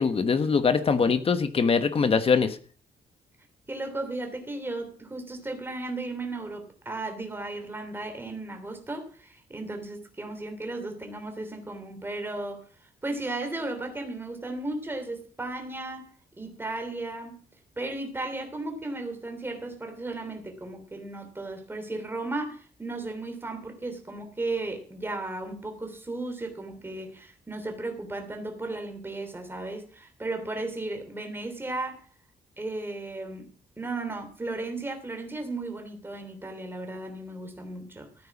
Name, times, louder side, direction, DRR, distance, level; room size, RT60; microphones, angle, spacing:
voice 1, 0.0-2.6, left 5 dB, 35° left, 10 dB, 1.2 m, -23 dB
voice 2, 3.7-12.6 13.0-16.1 16.4-17.4 17.8-32.0 32.6-33.4 33.8-38.3, right 2 dB, 15° right, 5 dB, 3.0 m, -35 dB
14.5 x 9.2 x 6.1 m, 0.42 s
wide cardioid pair, 160°, 17 cm